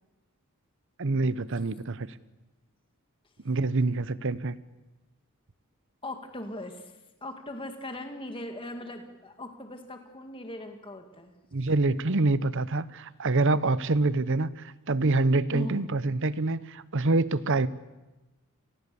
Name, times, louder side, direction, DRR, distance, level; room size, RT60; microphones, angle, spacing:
voice 1, 1.0-2.1 3.4-4.6 11.5-17.7, right 2 dB, 60° right, 16 dB, 0.9 m, -26 dB
voice 2, 6.0-6.9 7.2-11.3 15.5-15.8, left 1 dB, 25° left, 5 dB, 2.1 m, -39 dB
29.5 x 19.5 x 7.0 m, 1.1 s
head